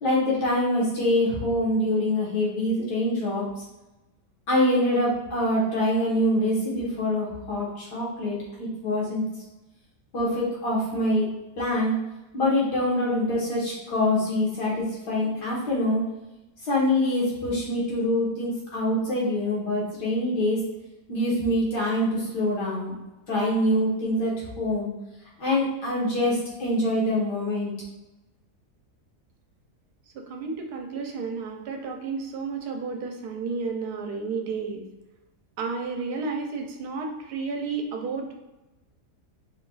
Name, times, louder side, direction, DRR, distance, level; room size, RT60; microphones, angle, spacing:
voice 1, 0.0-3.5 4.5-9.3 10.1-11.3 11.6-11.9 12.3-16.0 16.6-20.6 21.1-22.9 23.3-24.9 25.4-27.7, left 1 dB, 85° left, -6 dB, 1.9 m, -25 dB
voice 2, 30.1-34.9 35.6-38.3, right 4 dB, 80° right, 2 dB, 1.2 m, -32 dB
4.3 x 2.3 x 3.9 m, 1.0 s
omnidirectional pair, 1.7 m